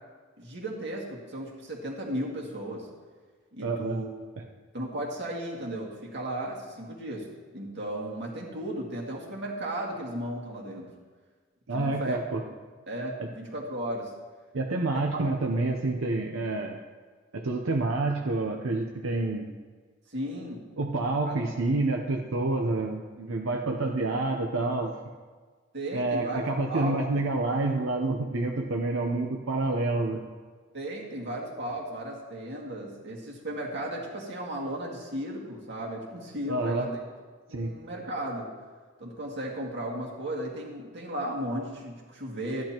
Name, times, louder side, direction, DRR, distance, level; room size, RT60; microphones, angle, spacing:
voice 1, 0.4-2.9 3.5-4.1 4.7-7.3 7.5-10.9 11.7-12.2 12.9-14.1 14.9-15.2 20.1-20.6 21.3-21.4 25.7-26.4 26.7-27.2 30.7-37.0 37.5-38.5 39.0-42.6, right 1 dB, 60° right, -3 dB, 2.2 m, -35 dB
voice 2, 3.6-4.0 11.7-12.4 13.2-13.3 14.5-16.8 17.3-19.5 20.8-25.0 25.9-30.2 36.5-36.9 37.5-37.7, right 2 dB, 90° right, 2 dB, 0.7 m, -28 dB
13.5 x 10.5 x 2.9 m, 1.5 s
head